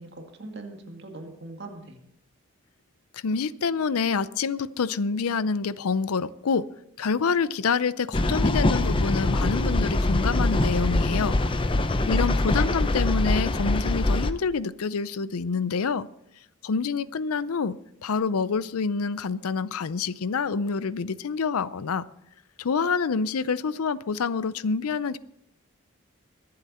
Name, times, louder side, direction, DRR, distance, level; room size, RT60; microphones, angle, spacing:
voice 1, 0.0-2.0 11.4-12.3, right 2 dB, 50° right, 2.0 m, -41 dB
voice 2, 3.1-6.7 7.0-11.4 12.1-16.1 16.6-22.1 22.6-25.2, left 5 dB, 90° left, 0.5 m, -27 dB
sound 1, 8.1-14.3, left 2 dB, 25° left, 0.5 m, -23 dB
22.5 x 7.8 x 4.3 m
head